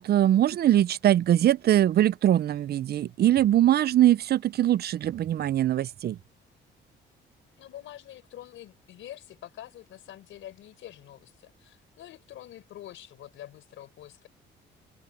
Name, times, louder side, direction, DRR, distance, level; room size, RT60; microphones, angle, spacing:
voice 1, 0.0-6.2, right 12 dB, 55° right, 0.4 m, -22 dB
voice 2, 7.6-14.3, left 12 dB, 80° left, 4.8 m, -46 dB
open air
cardioid pair, 90°, 20 cm